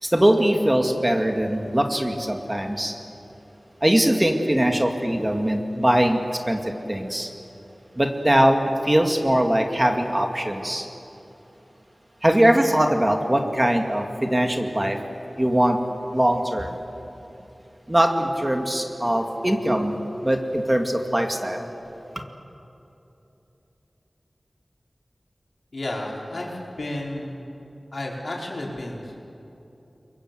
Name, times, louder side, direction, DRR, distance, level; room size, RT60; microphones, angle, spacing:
voice 1, 0.0-2.9 3.8-7.3 8.0-10.9 12.2-15.0 15.4-15.8 16.1-16.8 17.9-21.7, right 1 dB, 20° right, 3 dB, 2.4 m, -21 dB
voice 2, 25.7-27.4 27.9-29.1, left 1 dB, 75° left, -2 dB, 5.2 m, -32 dB
29.5 x 23.0 x 8.1 m, 2.9 s
wide cardioid pair, 70°, 0 cm